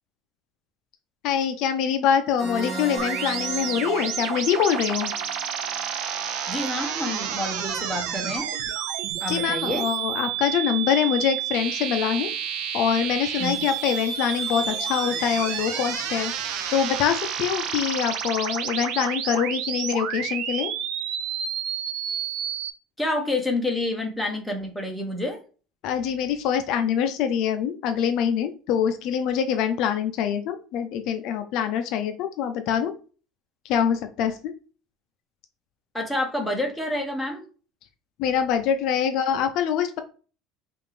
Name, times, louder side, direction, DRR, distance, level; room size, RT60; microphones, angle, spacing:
voice 1, 1.2-5.1 9.3-12.3 12.7-16.3 16.7-20.7 25.8-32.9 33.6-34.5 38.2-40.0, left 8 dB, 50° left, 7 dB, 0.5 m, -24 dB
sound 1, 2.4-7.0, right 2 dB, 25° right, 1.8 m, -37 dB
sound 2, 3.0-22.7, right 9 dB, 65° right, 0.5 m, -30 dB
voice 2, 6.5-8.5 9.2-9.9 13.4-13.6 23.0-25.4 35.9-37.4, left 1 dB, ahead, 0 dB, 0.8 m, -28 dB
5.1 x 2.5 x 3.2 m, 0.37 s
cardioid pair, 160°, 0 cm